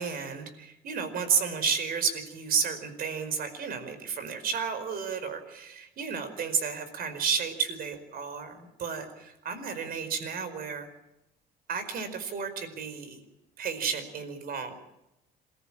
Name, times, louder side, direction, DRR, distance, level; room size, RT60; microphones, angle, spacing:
voice 1, 0.0-10.9 11.7-13.2 13.6-14.8, right 6 dB, 60° right, 10 dB, 4.9 m, -32 dB
27.5 x 14.5 x 8.9 m, 0.90 s
cardioid pair, 110°, 17 cm